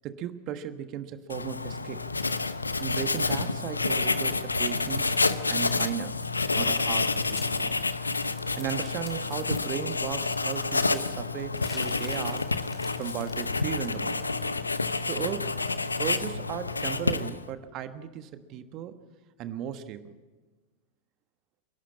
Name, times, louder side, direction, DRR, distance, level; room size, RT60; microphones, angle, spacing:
voice 1, 0.0-2.0 2.8-5.1 5.5-6.2 6.6-7.7 8.6-12.5 13.0-14.2 15.0-15.6 16.0-18.9 19.4-20.1, right 10 dB, 35° right, 11 dB, 1.3 m, -36 dB
Writing, 1.3-17.5, left 3 dB, 80° left, 0.8 m, -29 dB
sound 1, 7.4-9.6 11.4-14.4, left 7 dB, 30° left, 2.9 m, -49 dB
27.5 x 11.5 x 8.7 m, 1.3 s
figure-of-eight pair, 90°, 0 cm